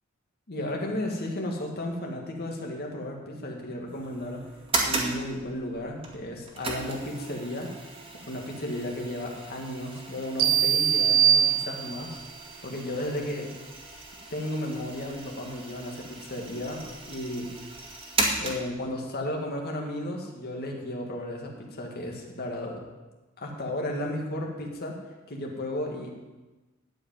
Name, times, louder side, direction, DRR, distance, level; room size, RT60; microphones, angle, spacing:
voice 1, 0.5-4.4 4.8-7.7 8.3-12.2 12.6-13.5 14.3-17.5 18.4-22.8 23.4-25.0 25.3-26.1, left 1 dB, 50° left, 0 dB, 2.3 m, -34 dB
sound 1, 3.9-19.0, right 2 dB, 25° right, 2.1 m, -36 dB
sound 2, 10.4-12.2, right 9 dB, 70° right, 1.0 m, -22 dB
13.0 x 5.3 x 9.2 m, 1.2 s
head